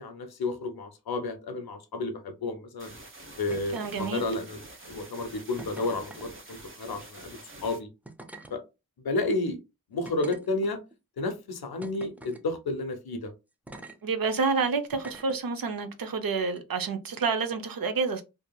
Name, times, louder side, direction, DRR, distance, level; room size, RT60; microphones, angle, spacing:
voice 1, 0.0-2.9 3.4-4.6 4.9-7.9 8.5-8.6 9.0-9.6 9.9-10.8 11.2-13.3, left 2 dB, 85° left, 0.7 m, -31 dB
sound 1, 2.8-7.8, right 1 dB, 35° right, 0.9 m, -47 dB
sound 2, 3.5-3.9 4.2-4.6 5.6-6.3 7.3-7.5 8.0-8.5 9.2-9.3 10.0-10.9 11.8-12.4 13.7-14.0 14.9-15.4 16.5-16.6, right 2 dB, 5° right, 0.4 m, -45 dB
voice 2, 3.7-4.2 14.0-18.2, right 4 dB, 70° right, 0.6 m, -29 dB
2.7 x 2.6 x 2.2 m
cardioid pair, 40°, 36 cm